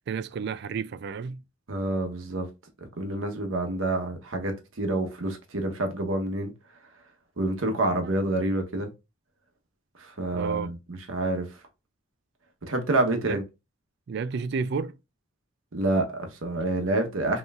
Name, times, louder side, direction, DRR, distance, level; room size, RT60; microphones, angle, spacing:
voice 1, 0.1-1.4 8.0-8.1 10.3-10.7 13.1-13.4 14.1-15.0, right 5 dB, 55° right, 0.3 m, -31 dB
voice 2, 1.7-2.5 3.0-6.5 7.4-8.9 10.0-11.5 12.7-13.4 15.7-17.4, right 2 dB, 85° right, 1.0 m, -28 dB
5.3 x 3.0 x 2.4 m
head